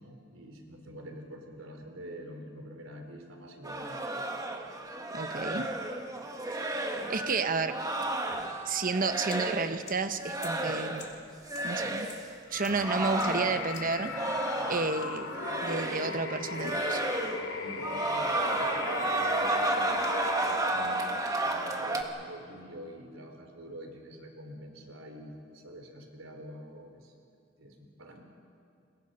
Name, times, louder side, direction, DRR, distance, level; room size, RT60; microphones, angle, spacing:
voice 1, 0.0-4.0 17.6-21.0 21.4-27.1 27.6-28.2, equal, 80° right, 3 dB, 3.8 m, -46 dB
sound 1, 3.6-9.8 10.2-11.1 11.4-12.2 12.7-15.0 15.3-16.2 16.5-17.5 17.8-22.0, right 2 dB, 20° right, 1.6 m, -32 dB
voice 2, 5.1-5.7 6.6-7.8 8.6-11.0 11.6-12.1 12.5-14.1 14.7-15.3 15.6-17.0, right 4 dB, 45° right, 9 dB, 1.0 m, -31 dB
sound 2, 8.7-14.1, left 6 dB, 35° left, 2.8 m, -52 dB
sound 3, 12.5-21.5, left 3 dB, 85° left, 2.3 m, -38 dB
30.0 x 22.5 x 5.5 m, 2.3 s
head